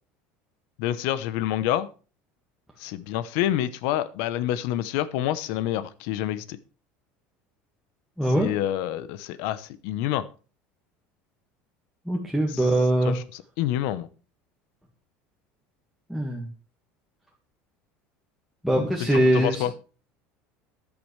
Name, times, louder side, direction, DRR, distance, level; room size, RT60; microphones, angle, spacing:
voice 1, 0.8-1.9 2.8-6.6 8.4-10.2 12.5-12.6 13.0-13.2 13.6-14.1 19.1-19.7, left 12 dB, 70° left, 15 dB, 0.9 m, -27 dB
voice 2, 8.2-8.5 12.1-13.2 16.1-16.5 18.6-19.6, right 1 dB, ahead, -3 dB, 1.8 m, -22 dB
13.5 x 10.5 x 3.3 m, 0.35 s
cardioid pair, 150°, 5 cm